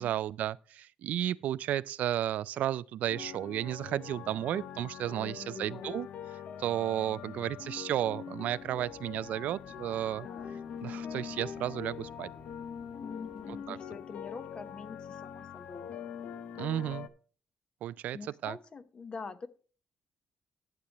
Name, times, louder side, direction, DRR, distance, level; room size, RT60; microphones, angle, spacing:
voice 1, 0.0-6.1 6.6-10.3 10.8-12.3 13.7-13.8 16.6-17.1 17.8-18.6, right 12 dB, 80° right, 0.3 m, -33 dB
sound 1, 3.1-17.1, left 8 dB, 70° left, 0.7 m, -43 dB
voice 2, 5.2-5.9 10.2-10.6 13.0-15.9 18.1-19.5, left 5 dB, 40° left, 0.9 m, -45 dB
sound 2, 8.5-13.6, right 3 dB, 20° right, 1.1 m, -58 dB
11.5 x 8.0 x 3.0 m
cardioid pair, 115°, 3 cm